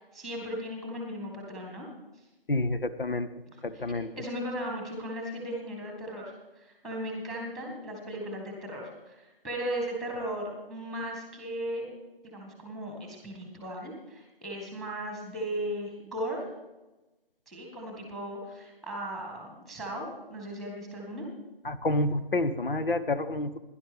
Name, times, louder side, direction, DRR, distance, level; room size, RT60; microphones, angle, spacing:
voice 1, 0.0-1.9 3.5-3.8 4.2-11.9 12.2-16.4 17.5-21.3, equal, ahead, 1 dB, 1.9 m, -37 dB
voice 2, 2.5-3.3 3.6-4.1 21.6-23.6, left 2 dB, 65° left, 12 dB, 1.1 m, -28 dB
17.0 x 11.5 x 3.5 m, 1.1 s
figure-of-eight pair, 150°, 30 cm